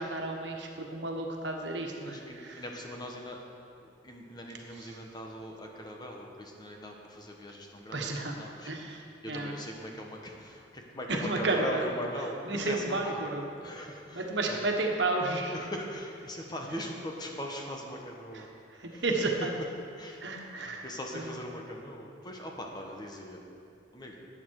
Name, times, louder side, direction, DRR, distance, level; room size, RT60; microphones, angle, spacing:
voice 1, 0.0-2.6 7.9-8.4 8.6-9.6 11.1-11.9 12.4-13.4 14.1-15.5 18.3-18.4 18.8-19.5 20.2-20.9 21.1-21.4, right 2 dB, 80° right, 1 dB, 1.5 m, -32 dB
voice 2, 2.0-3.4 3.8-8.7 9.2-13.2 13.6-14.6 15.5-18.5 18.9-19.0 20.0-20.2 20.8-23.4 23.9-24.3, equal, 25° left, 1 dB, 1.3 m, -40 dB
14.0 x 9.4 x 4.8 m, 2.6 s
head